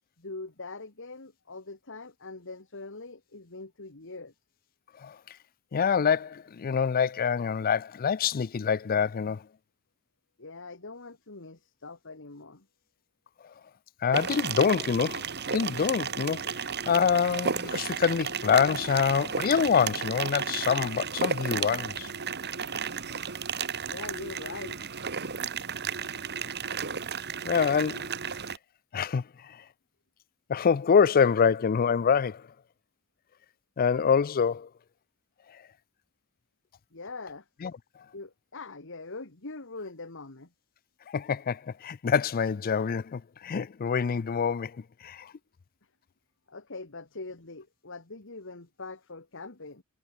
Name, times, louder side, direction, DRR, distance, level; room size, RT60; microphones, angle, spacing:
voice 1, 0.2-4.3 10.4-12.6 23.9-24.8 36.9-37.4 38.1-40.5 46.5-49.8, left 3 dB, 60° left, 2.1 m, -42 dB
voice 2, 5.7-9.4 14.0-16.6 16.9-22.1 27.4-28.1 28.9-29.6 30.5-32.4 33.8-34.7 37.6-37.7 41.1-44.7 45.0-45.3, left 6 dB, 40° left, 0.4 m, -26 dB
sound 1, 14.1-28.6, right 6 dB, 50° right, 1.9 m, -33 dB
head